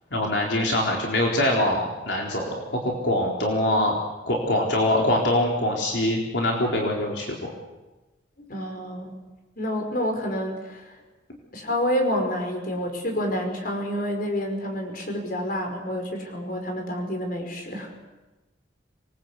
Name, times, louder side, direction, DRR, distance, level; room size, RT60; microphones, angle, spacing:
voice 1, 0.1-4.0 4.3-7.5, left 1 dB, 70° left, -1 dB, 4.2 m, -24 dB
voice 2, 8.5-9.2 9.6-10.9 11.5-18.1, equal, 50° left, 4 dB, 5.4 m, -28 dB
27.0 x 21.5 x 8.4 m, 1.1 s
head